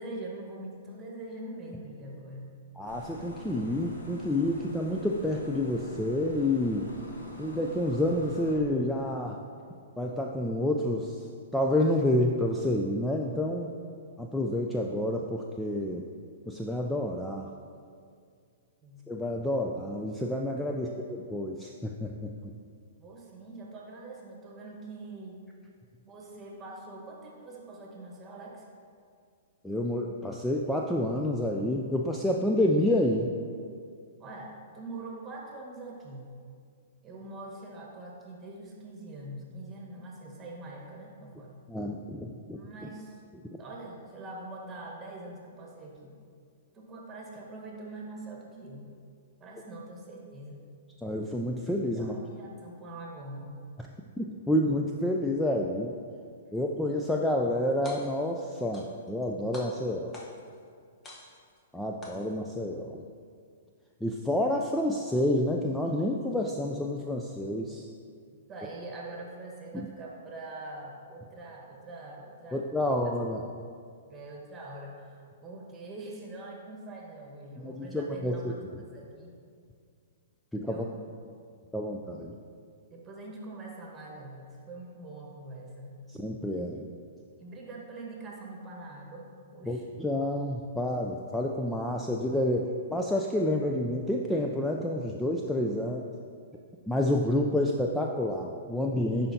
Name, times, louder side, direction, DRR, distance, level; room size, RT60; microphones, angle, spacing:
voice 1, 0.0-2.5 18.8-19.0 20.7-21.1 23.0-25.4 26.1-28.6 34.2-36.3 37.0-41.6 42.5-43.2 43.6-46.1 46.7-48.9 49.4-50.6 51.9-53.6 68.5-72.9 74.1-78.4 78.9-79.4 80.6-81.0 82.9-86.0 87.4-89.8, right 2 dB, 20° right, -1 dB, 1.3 m, -43 dB
voice 2, 2.8-6.9 7.4-9.4 10.0-11.2 11.5-13.7 14.2-16.0 16.5-17.5 19.1-22.5 29.6-33.3 41.7-42.6 51.0-52.2 54.2-55.9 56.5-60.2 61.7-63.0 64.0-67.9 69.7-69.9 72.5-73.4 77.6-78.8 80.5-80.8 81.7-82.3 86.1-86.9 89.6-96.0 96.9-99.3, left 1 dB, 5° left, 0 dB, 0.4 m, -29 dB
sound 1, 2.9-8.6, left 1 dB, 85° left, 1.5 m, -44 dB
sound 2, 57.7-58.3 58.7-59.3 59.5-60.5 61.0-61.6 62.0-62.6, left 1 dB, 20° left, 1.0 m, -47 dB
10.5 x 4.3 x 2.8 m, 2.2 s
figure-of-eight pair, 115°, 0 cm